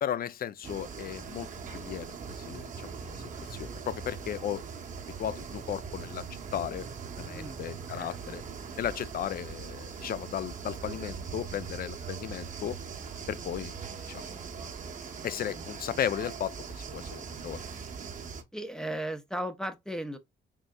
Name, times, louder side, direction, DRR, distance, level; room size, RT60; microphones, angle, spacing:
voice 1, 0.0-3.2 3.5-4.6 5.2-6.2 6.5-6.8 7.2-8.4 8.8-12.8 13.3-14.2 15.2-17.6, left 10 dB, 50° left, 0.4 m, -35 dB
sound 1, 0.6-18.4, right 6 dB, 40° right, 0.8 m, -41 dB
voice 2, 7.3-7.6 7.9-8.4 18.5-20.2, right 1 dB, 5° left, 0.6 m, -36 dB
4.1 x 3.7 x 2.2 m
cardioid pair, 90°, 20 cm